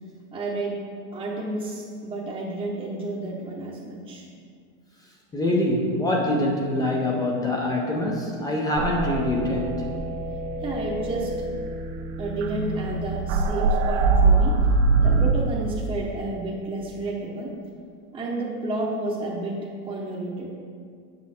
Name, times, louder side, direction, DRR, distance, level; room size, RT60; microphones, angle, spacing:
voice 1, 0.3-0.8 1.1-4.2 10.6-11.3 12.2-14.6 15.0-17.5 18.1-19.6 19.8-20.5, right 2 dB, 10° right, -6 dB, 0.7 m, -31 dB
voice 2, 5.3-9.9, left 1 dB, 10° left, -2 dB, 0.3 m, -24 dB
sound 1, 8.8-15.3, right 3 dB, 60° right, 0.8 m, -23 dB
8.7 x 6.4 x 4.1 m, 2.2 s
supercardioid pair, 155°, 44 cm